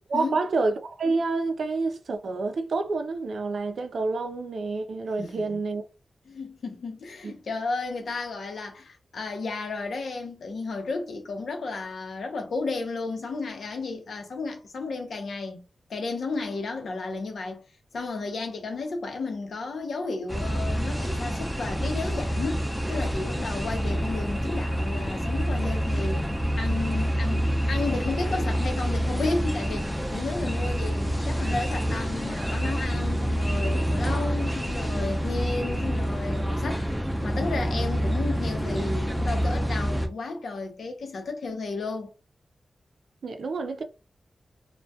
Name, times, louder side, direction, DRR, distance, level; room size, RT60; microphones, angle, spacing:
voice 1, 0.1-5.8 43.2-43.8, right 3 dB, 75° right, 0.4 m, -28 dB
voice 2, 5.2-5.6 6.3-15.6 15.9-17.6 17.9-26.3 26.6-37.0 37.2-42.1, left 3 dB, 90° left, 0.6 m, -33 dB
sound 1, 20.3-40.1, equal, 5° right, 0.5 m, -27 dB
2.2 x 2.1 x 2.7 m
wide cardioid pair, 100°, 0 cm